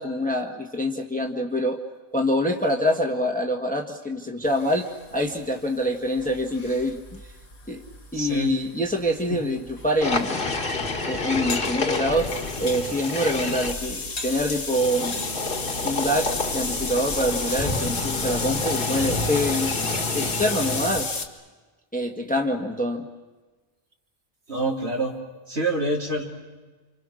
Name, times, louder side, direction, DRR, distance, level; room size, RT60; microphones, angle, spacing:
voice 1, 0.0-1.8 2.1-7.2 7.7-7.8 8.1-10.5 11.1-15.2 15.8-21.1 21.9-23.1, equal, 10° left, 2 dB, 1.6 m, -25 dB
sound 1, 4.5-21.3, left 3 dB, 85° left, 2.2 m, -33 dB
voice 2, 8.1-8.6 9.3-9.4 24.5-25.2 25.5-26.3, right 2 dB, 85° right, -3 dB, 3.9 m, -26 dB
sound 2, 10.0-13.7 14.7-21.1, left 3 dB, 55° left, 2.1 m, -29 dB
30.0 x 26.5 x 6.5 m, 1.3 s
omnidirectional pair, 1.1 m